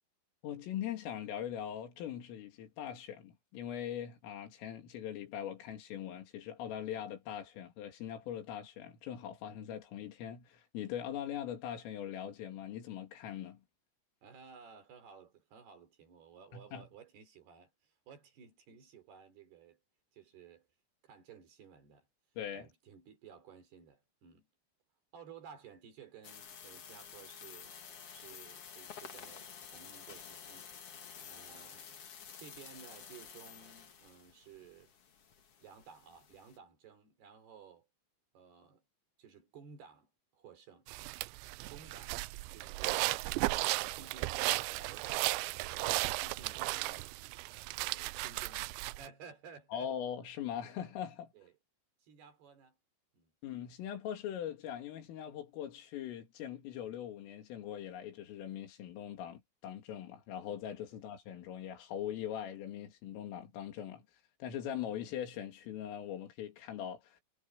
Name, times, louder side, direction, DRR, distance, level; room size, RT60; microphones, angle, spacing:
voice 1, 0.4-13.6 16.5-16.9 22.4-22.7 49.7-51.3 53.4-64.1 64.4-67.2, left 10 dB, 85° left, 5.3 m, -41 dB
voice 2, 14.2-19.8 20.1-20.7 21.0-22.1 22.5-24.5 25.1-27.8 28.1-30.7 31.3-32.1 32.4-34.9 35.6-37.9 38.3-38.8 39.2-40.9 41.6-43.3 43.8-45.3 45.7-47.1 47.8-48.6 48.9-49.9 51.3-51.5 52.0-52.8 53.1-53.3, right 6 dB, 55° right, 5.5 m, -56 dB
sound 1, 26.2-36.6, left 7 dB, 60° left, 1.6 m, -51 dB
sound 2, 40.9-49.1, right 22 dB, 85° right, 2.5 m, -35 dB
omnidirectional pair, 5.7 m